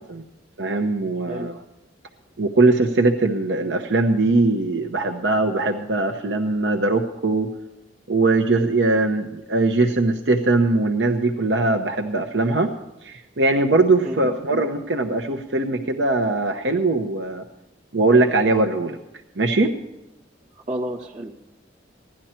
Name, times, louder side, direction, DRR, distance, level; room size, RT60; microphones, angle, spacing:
voice 1, 0.6-1.5 2.4-7.5 8.1-12.7 13.0-17.4 17.9-19.0 19.4-19.7, right 2 dB, 75° right, 4 dB, 0.9 m, -21 dB
voice 2, 20.7-21.5, right 1 dB, 40° right, 0 dB, 1.8 m, -31 dB
16.5 x 11.5 x 4.4 m, 0.97 s
head